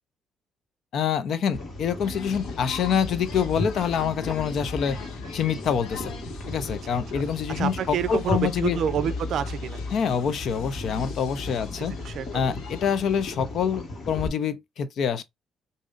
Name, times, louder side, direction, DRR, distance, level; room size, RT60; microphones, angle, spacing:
voice 1, 0.9-5.0 5.3-6.1 6.5-8.8 9.9-12.0 12.3-15.2, left 7 dB, 60° left, 0.6 m, -26 dB
sound 1, 1.5-14.3, left 2 dB, 35° left, 1.6 m, -35 dB
sound 2, 2.0-13.2, left 6 dB, 80° left, 1.0 m, -45 dB
voice 2, 7.6-9.8 11.8-12.6, right 9 dB, 60° right, 0.5 m, -28 dB
5.0 x 2.7 x 2.4 m
cardioid pair, 145°, 0 cm